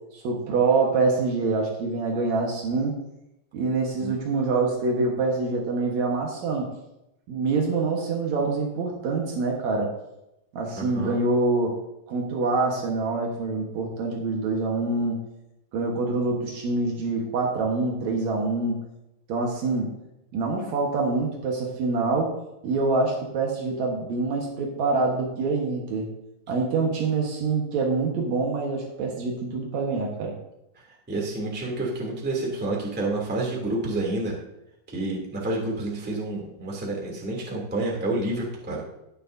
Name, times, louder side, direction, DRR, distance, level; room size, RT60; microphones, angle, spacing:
voice 1, 0.1-3.0 3.5-6.7 7.3-9.9 10.5-11.8 12.1-15.2 15.7-18.8 19.3-19.9 20.3-22.4 22.6-26.1 26.5-30.3, right 3 dB, 90° right, 0 dB, 1.5 m, -25 dB
voice 2, 10.8-11.2 30.7-34.3 34.9-38.8, right 2 dB, 5° right, -3 dB, 1.0 m, -29 dB
18.0 x 7.0 x 2.7 m, 0.87 s
omnidirectional pair, 5.4 m